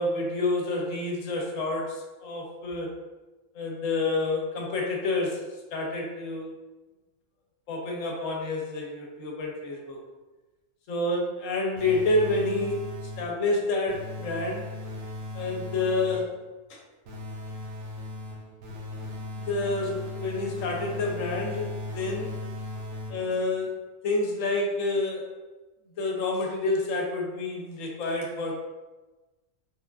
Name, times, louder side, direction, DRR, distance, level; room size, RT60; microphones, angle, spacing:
voice 1, 0.0-3.0 3.5-5.4 5.7-6.6 7.7-10.0 10.9-14.7 15.3-16.3 16.7-16.8 19.3-22.4 23.1-23.8 24.0-25.3 26.0-28.5, left 2 dB, 80° left, 0 dB, 1.0 m, -28 dB
sound 1, 11.8-13.4 13.9-16.4 17.0-23.4, left 2 dB, 60° right, 0.8 m, -37 dB
3.4 x 2.3 x 2.3 m, 1.2 s
omnidirectional pair, 1.3 m